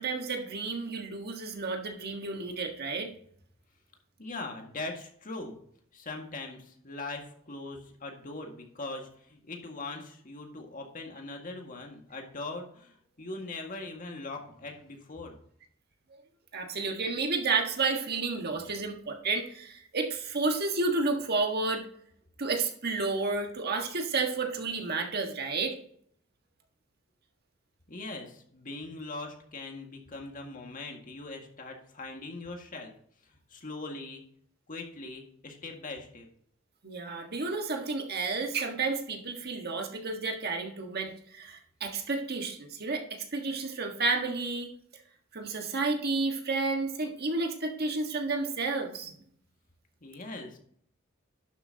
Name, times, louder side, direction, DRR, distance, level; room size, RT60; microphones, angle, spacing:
voice 1, 0.0-3.1 16.5-21.8 22.4-25.8 36.8-44.7 45.3-49.1, right 3 dB, 55° right, 3 dB, 1.6 m, -31 dB
voice 2, 4.2-5.6 5.9-15.3 27.9-32.9 33.5-34.2 34.7-36.3 50.0-50.6, left 2 dB, 45° left, 2 dB, 1.9 m, -41 dB
11.5 x 8.1 x 2.9 m, 0.62 s
head